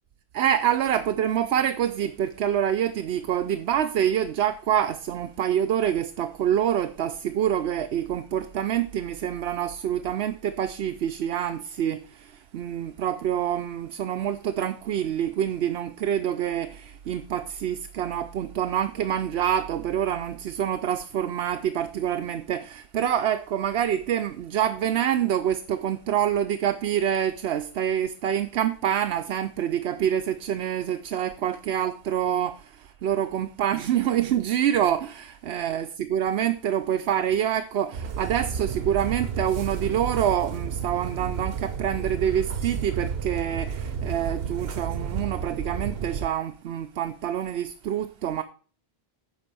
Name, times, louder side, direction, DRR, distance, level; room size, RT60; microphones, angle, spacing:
voice 1, 0.3-48.4, right 10 dB, 85° right, 0.9 m, -26 dB
sound 1, 37.9-46.3, right 6 dB, 70° right, 1.1 m, -31 dB
9.8 x 4.1 x 6.8 m
omnidirectional pair, 1.1 m